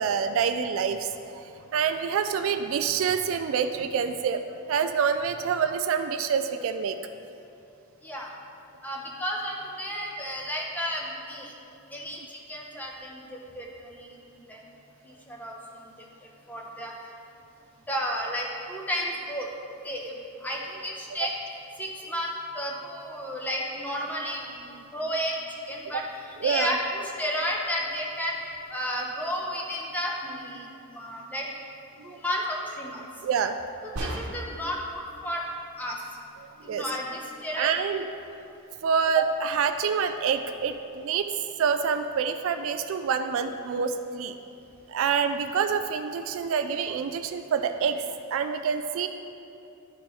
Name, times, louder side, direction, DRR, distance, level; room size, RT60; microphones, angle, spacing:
voice 1, 0.0-1.4 1.7-4.4 4.7-7.0 21.2-21.3 25.8-26.0 26.4-26.7 32.0-32.2 33.2-33.6 36.4-36.8 37.6-38.1 38.8-41.3 41.6-44.3 44.9-48.0 48.3-49.1, right 6 dB, 60° right, 8 dB, 0.3 m, -27 dB
voice 2, 8.8-11.5 11.9-14.6 15.0-16.9 17.9-19.5 19.8-28.4 28.7-31.5 32.0-33.0 33.8-35.4 35.8-36.0 36.6-37.8 47.1-47.2, equal, 10° left, -2 dB, 0.8 m, -33 dB
sound 1, 34.0-34.7, right 1 dB, 85° right, 1.1 m, -33 dB
12.0 x 4.4 x 3.1 m, 2.7 s
head